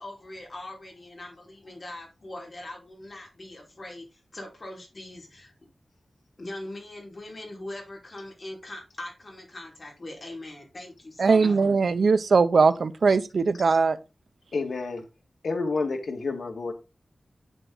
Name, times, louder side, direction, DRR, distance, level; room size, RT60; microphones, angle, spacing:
voice 1, 0.0-5.5 6.4-11.6, left 1 dB, 40° left, 5.0 m, -41 dB
voice 2, 11.2-14.0, right 4 dB, 75° right, 0.6 m, -20 dB
voice 3, 14.5-15.0 15.4-16.7, left 3 dB, 80° left, 2.3 m, -29 dB
9.1 x 7.3 x 4.0 m
wide cardioid pair, 110°, 0 cm